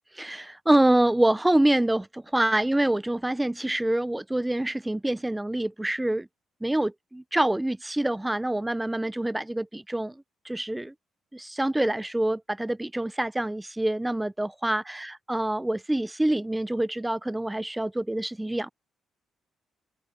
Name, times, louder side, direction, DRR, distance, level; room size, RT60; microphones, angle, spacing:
voice 1, 0.2-6.3 6.6-10.9 11.3-18.7, right 1 dB, 10° right, 0.5 m, -26 dB
open air
cardioid pair, 90°, 0 cm